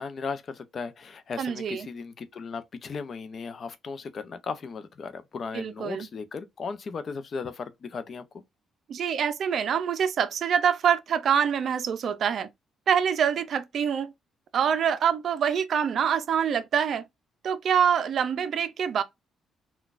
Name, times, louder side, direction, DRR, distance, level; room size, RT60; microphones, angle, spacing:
voice 1, 0.0-8.3, left 5 dB, 50° left, 0.5 m, -36 dB
voice 2, 1.4-1.9 5.5-6.1 8.9-12.5 12.9-14.1 14.5-17.1 17.4-19.0, right 8 dB, 60° right, 0.4 m, -25 dB
3.9 x 2.3 x 2.4 m
cardioid pair, 90°, 0 cm